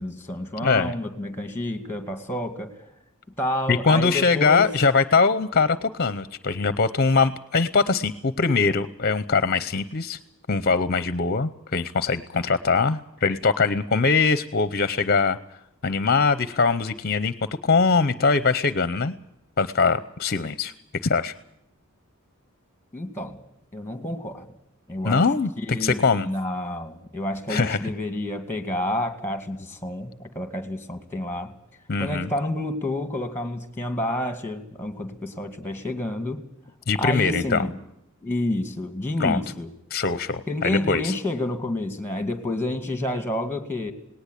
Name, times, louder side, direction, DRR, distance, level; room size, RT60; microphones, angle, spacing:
voice 1, 0.0-2.8 3.4-4.7 22.9-23.4 23.7-24.5 24.9-25.3 25.6-31.5 32.0-36.4 37.0-37.8 38.2-39.7 40.5-43.9, left 1 dB, 10° left, 9 dB, 2.3 m, -29 dB
voice 2, 0.6-0.9 3.7-10.2 10.5-15.4 15.8-17.3 17.6-19.1 19.6-20.7 21.0-21.3 25.0-26.3 27.5-27.8 31.9-32.3 36.9-37.6 39.2-39.4 39.9-41.1, left 4 dB, 45° left, 14 dB, 0.8 m, -22 dB
19.0 x 18.5 x 8.3 m, 0.82 s
head